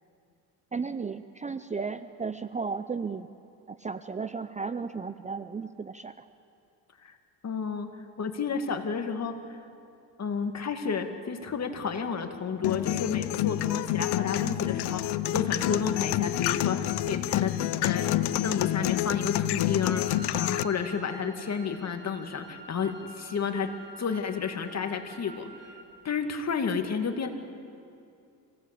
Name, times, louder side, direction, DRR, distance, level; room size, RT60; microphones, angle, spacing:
voice 1, 0.7-3.3 3.7-6.3, right 5 dB, 20° right, 12 dB, 0.6 m, -34 dB
voice 2, 7.4-7.9 8.2-9.6 10.2-17.6 17.8-18.1 18.4-23.7 24.0-25.7 26.0-27.3, left 6 dB, 40° left, 6 dB, 2.2 m, -31 dB
sound 1, 12.6-20.6, left 14 dB, 70° left, 0.8 m, -28 dB
Wind instrument woodwind instrument, 19.9-25.9, right 2 dB, 50° right, 4.5 m, -48 dB
25.5 x 17.5 x 8.5 m, 2.5 s
cardioid pair, 95°, 41 cm